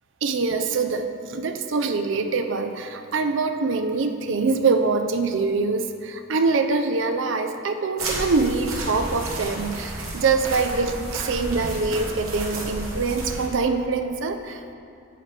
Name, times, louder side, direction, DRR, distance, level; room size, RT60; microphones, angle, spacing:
voice 1, 0.2-14.7, right 4 dB, 60° right, 7 dB, 0.5 m, -24 dB
sound 1, 8.0-13.5, right 1 dB, 80° right, 1.3 m, -32 dB
9.6 x 6.5 x 3.3 m, 2.5 s
head